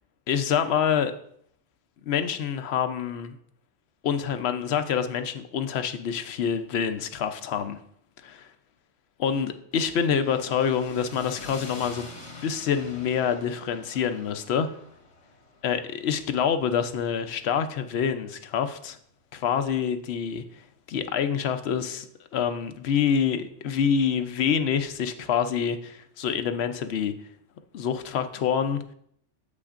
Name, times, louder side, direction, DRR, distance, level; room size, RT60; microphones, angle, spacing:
voice 1, 0.3-1.1 2.1-3.4 4.0-7.8 8.2-8.4 9.2-12.1 12.4-14.7 15.6-19.0 19.3-20.4 20.9-22.1 22.3-27.1 27.7-28.8, left 7 dB, 65° left, 9 dB, 0.9 m, -26 dB
sound 1, 9.7-18.0, left 2 dB, 80° left, 1.7 m, -46 dB
8.5 x 7.7 x 2.5 m, 0.68 s
omnidirectional pair, 1.3 m